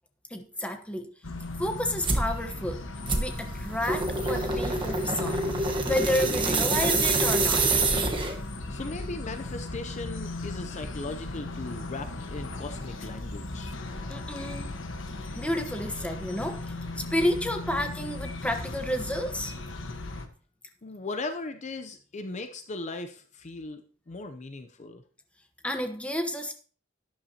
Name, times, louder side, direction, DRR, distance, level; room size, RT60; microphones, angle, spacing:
voice 1, 0.3-1.1 1.6-2.8 3.2-5.4 5.9-7.7 14.1-14.7 15.3-19.5 25.6-26.5, left 1 dB, 5° left, 1.1 m, -30 dB
metal gate with birds behind it, 1.2-20.3, left 2 dB, 70° left, 1.3 m, -37 dB
sound 1, 2.0-2.3 3.1-8.5, right 3 dB, 25° right, 1.2 m, -26 dB
voice 2, 8.7-13.7 14.4-14.6 20.8-25.0, left 3 dB, 35° left, 0.6 m, -38 dB
12.0 x 10.5 x 2.9 m
head